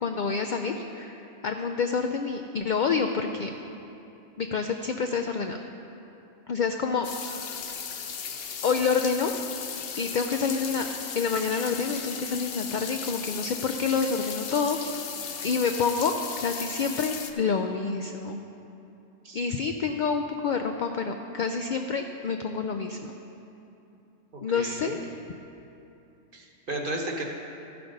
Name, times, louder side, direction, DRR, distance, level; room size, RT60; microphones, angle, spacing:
voice 1, 0.0-3.5 4.4-5.6 6.5-7.7 8.6-9.3 10.0-10.9 11.1-14.8 15.4-18.4 19.3-23.1 24.4-25.0, left 5 dB, 80° left, 5 dB, 0.4 m, -28 dB
sound 1, 7.0-17.3, left 7 dB, 55° left, 0.8 m, -36 dB
voice 2, 24.3-25.0 26.3-27.2, right 1 dB, 45° right, 1 dB, 1.1 m, -34 dB
14.0 x 5.9 x 5.2 m, 2.8 s
omnidirectional pair, 1.4 m